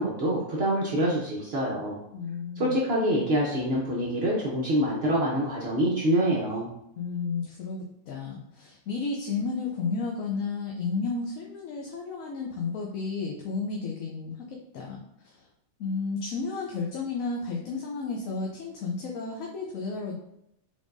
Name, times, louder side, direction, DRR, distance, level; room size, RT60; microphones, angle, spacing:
voice 1, 0.0-2.0 2.6-6.7, right 1 dB, 55° right, -4 dB, 1.0 m, -26 dB
voice 2, 2.1-2.8 7.0-15.5 15.8-20.2, left 4 dB, 85° left, 0 dB, 1.1 m, -32 dB
4.9 x 3.4 x 2.6 m, 0.79 s
omnidirectional pair, 1.4 m